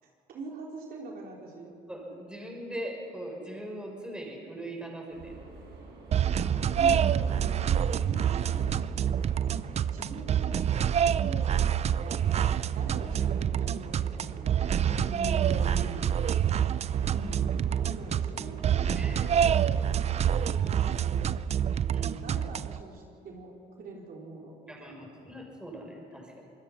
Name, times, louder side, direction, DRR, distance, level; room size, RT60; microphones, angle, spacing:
voice 1, 0.3-1.7 2.1-2.2 6.4-9.4 9.9-10.6 11.0-12.2 12.7-14.6 17.0-17.5 17.9-21.3 22.2-25.0, right 2 dB, 60° right, -1 dB, 3.7 m, -44 dB
voice 2, 1.9-5.3 14.9-16.1 18.9-19.3 21.8-22.2 24.7-26.4, right 1 dB, 5° right, -1 dB, 6.2 m, -40 dB
sound 1, 5.1-20.8, right 3 dB, 80° right, 6.3 m, -47 dB
sound 2, 6.1-22.8, right 9 dB, 40° right, 0.5 m, -27 dB
25.0 x 21.5 x 5.8 m, 2.5 s
cardioid pair, 110°, 17 cm